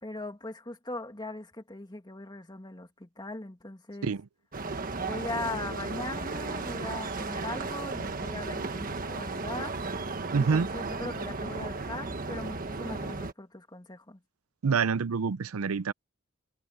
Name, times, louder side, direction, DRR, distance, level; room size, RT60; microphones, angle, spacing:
voice 1, 0.0-4.1 5.0-9.8 10.3-14.2, left 2 dB, 20° left, 2.2 m, -39 dB
sound 1, 4.5-13.3, right 3 dB, 40° right, 1.4 m, -35 dB
sound 2, 4.8-12.9, left 2 dB, 90° left, 6.6 m, -59 dB
Piano, 7.4-9.7, equal, 15° right, 4.2 m, -63 dB
voice 2, 10.3-10.7 14.6-15.9, right 5 dB, 85° right, 0.5 m, -26 dB
head